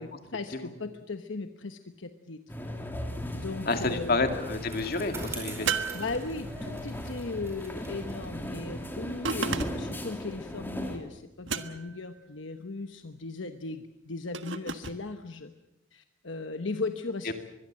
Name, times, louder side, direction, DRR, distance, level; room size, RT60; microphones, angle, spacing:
voice 1, 0.0-2.7 3.3-4.2 5.9-15.5 15.9-17.3, left 3 dB, 75° left, 7 dB, 1.1 m, -37 dB
sound 1, 2.5-11.0, equal, 10° left, 2.9 m, -38 dB
Bicycle, 3.5-10.2, right 2 dB, 15° right, 4.9 m, -46 dB
voice 2, 3.7-5.7 17.3-17.4, left 3 dB, 50° left, 6 dB, 2.5 m, -29 dB
sound 2, 5.7-6.8 9.2-10.0 11.5-12.1 14.3-15.0, right 6 dB, 75° right, 1.4 m, -33 dB
24.0 x 21.5 x 7.6 m, 0.95 s
head